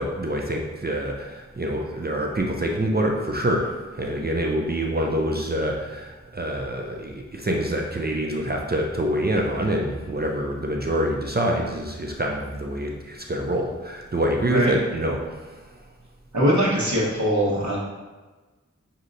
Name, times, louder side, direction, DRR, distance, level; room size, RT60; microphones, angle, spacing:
voice 1, 0.0-15.4, right 1 dB, 30° right, 0 dB, 0.5 m, -26 dB
voice 2, 16.3-17.8, equal, 65° right, -5 dB, 1.2 m, -21 dB
6.3 x 2.8 x 2.6 m, 1.3 s
wide cardioid pair, 45°, 31 cm